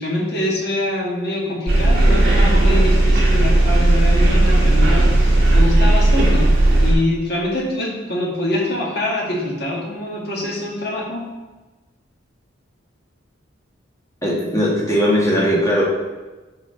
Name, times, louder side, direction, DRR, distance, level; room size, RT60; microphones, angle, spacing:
voice 1, 0.0-6.5 6.8-11.3, left 1 dB, 55° left, -3 dB, 1.6 m, -24 dB
sound 1, 1.7-6.9, right 1 dB, 55° right, 1.8 m, -14 dB
voice 2, 14.2-15.8, equal, 15° left, -5 dB, 1.4 m, -18 dB
4.7 x 4.5 x 4.9 m, 1.2 s
head